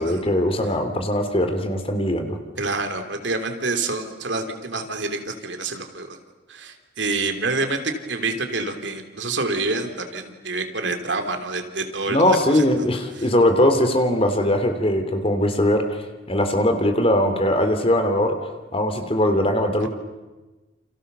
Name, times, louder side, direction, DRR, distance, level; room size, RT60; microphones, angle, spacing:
voice 1, 0.0-2.4 12.1-16.0 16.3-18.3 18.7-19.9, left 1 dB, 30° left, 7 dB, 3.1 m, -20 dB
voice 2, 2.6-6.2 6.5-12.7 13.2-13.3, right 3 dB, 65° right, 6 dB, 3.2 m, -27 dB
29.0 x 29.0 x 6.9 m, 1.2 s
head